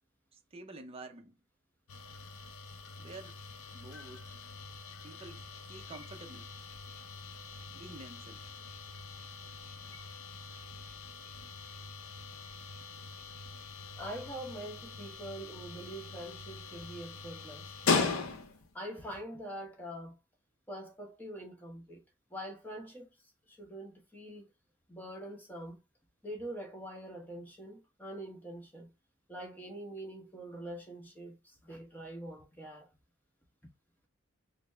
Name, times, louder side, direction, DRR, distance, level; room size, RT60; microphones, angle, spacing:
voice 1, 0.3-1.4 3.0-3.4 3.7-4.4 5.0-6.5 7.3-7.4 7.7-8.5, right 2 dB, 30° right, 0.5 m, -49 dB
sound 1, 1.9-18.7, left 4 dB, 80° left, 0.6 m, -40 dB
voice 2, 14.0-18.2 18.7-20.2 20.7-22.0 22.3-23.1 23.5-24.5 24.9-25.8 26.2-28.9 29.3-32.9, equal, 10° left, 1.0 m, -44 dB
4.0 x 2.1 x 3.2 m
head